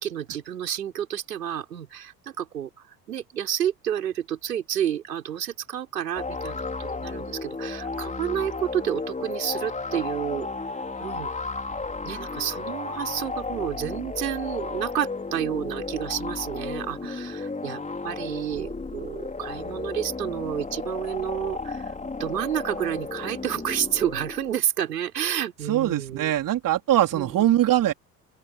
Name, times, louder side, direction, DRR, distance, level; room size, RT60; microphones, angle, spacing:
voice 1, 0.0-10.5 11.0-11.3 12.0-21.9 22.2-26.3 27.1-27.5, right 10 dB, 75° right, 6.2 m, -30 dB
sound 1, 6.2-24.6, left 3 dB, 15° left, 4.1 m, -34 dB
voice 2, 25.7-27.9, right 13 dB, 40° right, 3.7 m, -22 dB
open air
figure-of-eight pair, 65°, 49 cm